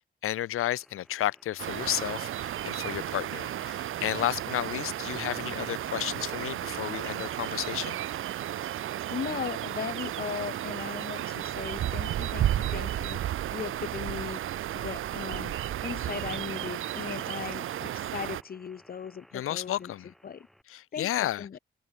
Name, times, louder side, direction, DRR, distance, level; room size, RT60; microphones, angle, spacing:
voice 1, 0.2-8.0 19.3-20.1 20.7-21.5, left 13 dB, 85° left, 0.6 m, -32 dB
sound 1, 0.6-20.6, equal, ahead, 6.4 m, -59 dB
sound 2, 1.6-18.4, right 12 dB, 75° right, 0.6 m, -33 dB
voice 2, 9.1-14.4 14.7-19.9 20.2-20.5 20.9-21.6, left 7 dB, 45° left, 1.8 m, -38 dB
wide cardioid pair, 175°, 21 cm